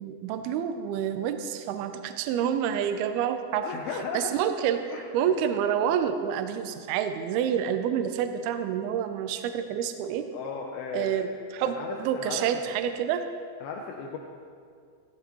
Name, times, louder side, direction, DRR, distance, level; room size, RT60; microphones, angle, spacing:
voice 1, 0.0-3.6 4.1-10.2 10.9-13.2, right 8 dB, 85° right, 7 dB, 2.2 m, -28 dB
voice 2, 3.6-4.3 4.9-5.0 10.3-11.3 11.7-12.6 13.6-14.2, left 5 dB, 80° left, 1 dB, 2.1 m, -36 dB
16.0 x 14.0 x 3.1 m, 2.2 s
omnidirectional pair, 5.3 m